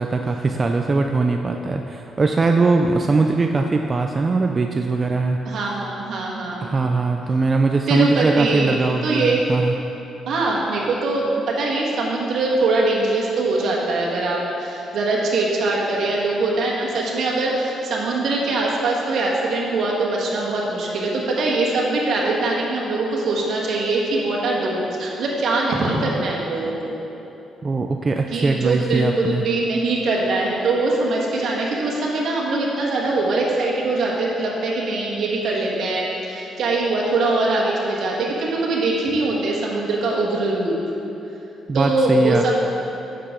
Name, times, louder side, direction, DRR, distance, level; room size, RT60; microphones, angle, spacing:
voice 1, 0.0-5.4 6.6-9.7 27.6-29.4 41.7-42.5, right 3 dB, 30° right, 3 dB, 0.4 m, -21 dB
voice 2, 5.4-6.7 7.9-8.7 9.0-9.4 10.2-26.9 28.3-40.7 41.7-42.5, right 2 dB, 70° right, -3 dB, 1.6 m, -22 dB
9.8 x 6.7 x 3.8 m, 3.0 s
cardioid pair, 90°, 0 cm